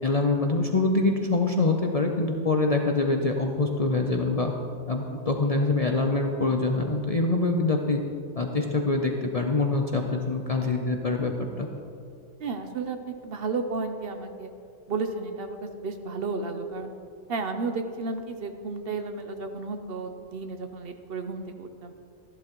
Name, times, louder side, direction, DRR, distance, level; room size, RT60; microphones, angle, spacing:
voice 1, 0.0-4.5 4.9-8.0 8.4-11.7, left 3 dB, 40° left, 2 dB, 0.5 m, -25 dB
voice 2, 12.4-14.5 14.9-16.9 17.3-21.9, right 4 dB, 55° right, 7 dB, 0.8 m, -33 dB
14.0 x 11.0 x 3.0 m, 2.5 s
omnidirectional pair, 1.3 m